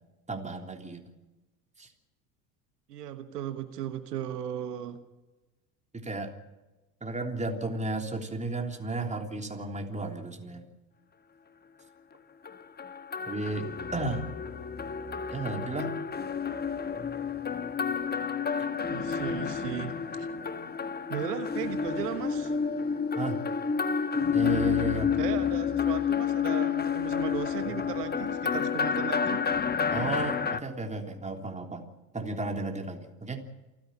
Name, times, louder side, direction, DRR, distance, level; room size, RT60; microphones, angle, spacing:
voice 1, 0.3-1.0 1.8-1.9 6.0-6.3 7.0-10.6 13.3-13.7 13.9-14.3 15.3-16.0 23.1-23.4 24.3-25.1 29.9-31.8 32.1-33.5, right 2 dB, 15° right, 4 dB, 3.3 m, -33 dB
voice 2, 2.9-5.0 18.9-20.3 21.1-22.5 25.2-29.4, right 10 dB, 85° right, 10 dB, 1.4 m, -36 dB
sound 1, 12.4-30.6, left 6 dB, 20° left, 1.2 m, -30 dB
28.0 x 10.5 x 8.8 m, 1.1 s
hypercardioid pair, 70°, 47 cm